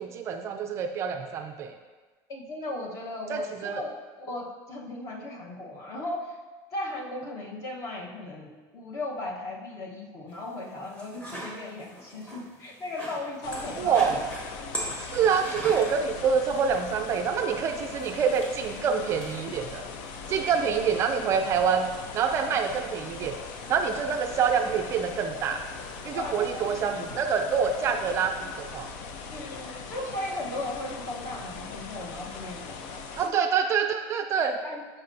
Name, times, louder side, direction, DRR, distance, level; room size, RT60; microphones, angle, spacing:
voice 1, 0.0-1.7 3.3-3.8 13.8-14.2 15.0-19.9 20.3-23.4 23.7-25.6 26.0-28.9 33.2-34.6, right 6 dB, 30° right, 5 dB, 0.4 m, -26 dB
voice 2, 2.3-6.4 6.7-14.2 20.6-20.8 26.1-26.7 29.3-33.5 34.6-34.8, left 2 dB, 35° left, -1 dB, 1.2 m, -37 dB
sound 1, 10.3-28.5, equal, 15° left, 1.4 m, -44 dB
sound 2, 13.4-33.3, left 5 dB, 65° left, 0.7 m, -40 dB
12.5 x 5.6 x 2.8 m, 1.3 s
cardioid pair, 175°, 9 cm